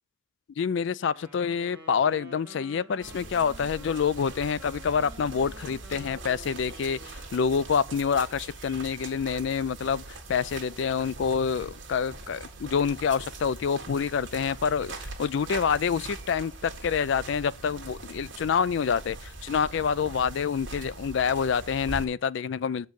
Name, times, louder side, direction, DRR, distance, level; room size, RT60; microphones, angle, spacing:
voice 1, 0.6-10.0 10.3-22.9, left 6 dB, 55° left, 0.3 m, -27 dB
Wind instrument woodwind instrument, 1.1-8.3, right 1 dB, 10° right, 1.8 m, -50 dB
sound 1, 3.0-22.1, right 2 dB, 60° right, 1.5 m, -42 dB
6.9 x 4.5 x 6.2 m
head